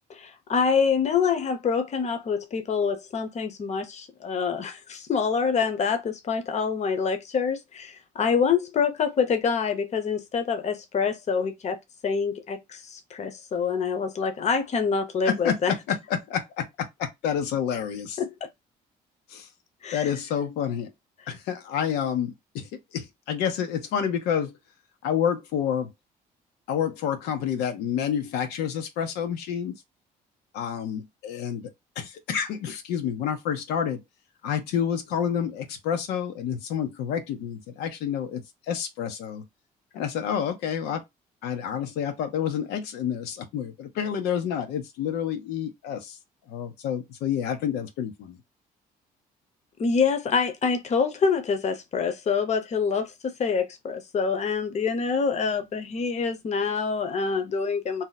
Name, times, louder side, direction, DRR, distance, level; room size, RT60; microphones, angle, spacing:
voice 1, 0.1-11.8 12.0-15.7 18.2-18.5 19.8-20.1 49.8-58.0, left 5 dB, 45° left, 0.8 m, -26 dB
voice 2, 15.2-18.2 19.3-19.5 19.9-20.9 21.3-24.5 25.0-25.9 26.7-29.8 30.5-31.7 32.0-34.0 34.4-39.4 39.9-41.0 41.4-46.2 46.5-48.4, left 8 dB, 90° left, 0.6 m, -29 dB
2.7 x 2.0 x 3.9 m
cardioid pair, 95°, 16 cm